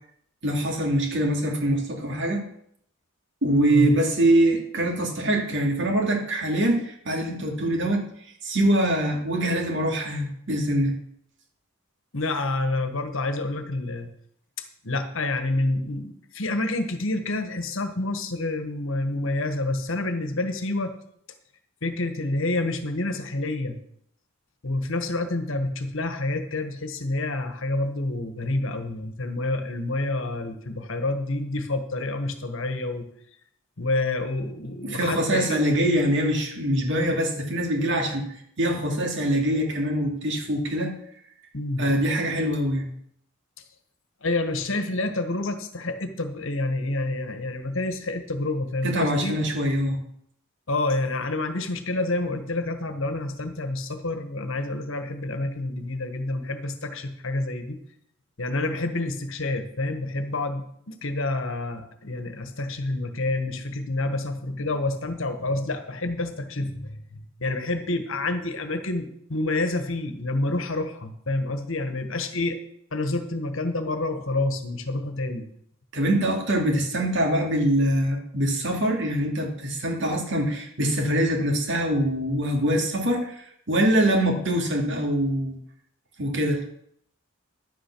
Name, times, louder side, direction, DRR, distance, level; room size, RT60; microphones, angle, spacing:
voice 1, 0.4-2.4 3.4-8.0 8.4-10.9 34.8-38.3 38.6-40.9 41.8-42.9 48.8-50.0 75.9-85.6 86.2-86.6, right 1 dB, 55° right, 1 dB, 2.6 m, -24 dB
voice 2, 12.1-14.1 14.8-20.9 21.8-23.8 24.6-33.1 33.8-35.7 36.9-37.1 41.5-41.9 44.2-49.3 50.7-57.8 58.4-72.6 72.9-75.5, left 2 dB, 65° left, 8 dB, 1.4 m, -28 dB
11.0 x 8.7 x 6.2 m, 0.70 s
head